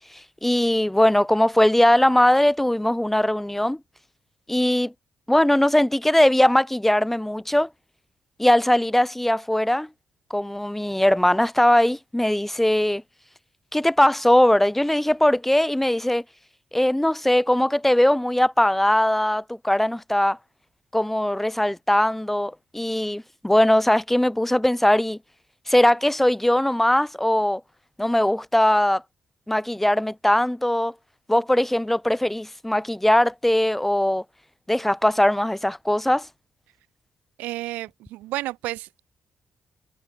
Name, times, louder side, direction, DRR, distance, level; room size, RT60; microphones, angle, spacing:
voice 1, 0.1-3.8 4.5-4.9 5.3-7.7 8.4-9.9 10.3-13.0 13.7-16.2 16.7-20.4 20.9-25.2 25.7-27.6 28.0-29.0 29.5-30.9 31.3-34.2 34.7-36.3, left 1 dB, 10° left, 2.0 m, -20 dB
voice 2, 37.4-39.0, right 17 dB, 80° right, 5.7 m, -31 dB
hypercardioid pair, 45°, 3 cm